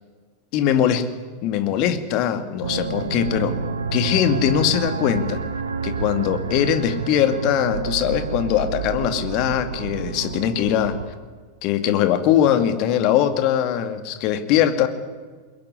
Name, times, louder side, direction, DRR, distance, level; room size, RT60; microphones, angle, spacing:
voice 1, 0.5-1.0 1.4-3.6 3.9-5.4 5.8-11.0 11.6-14.9, left 10 dB, 40° left, 9 dB, 2.3 m, -21 dB
sound 1, 2.6-11.1, right 5 dB, 70° right, 1.9 m, -28 dB
22.0 x 21.5 x 9.9 m, 1.4 s
figure-of-eight pair, 90°, 0 cm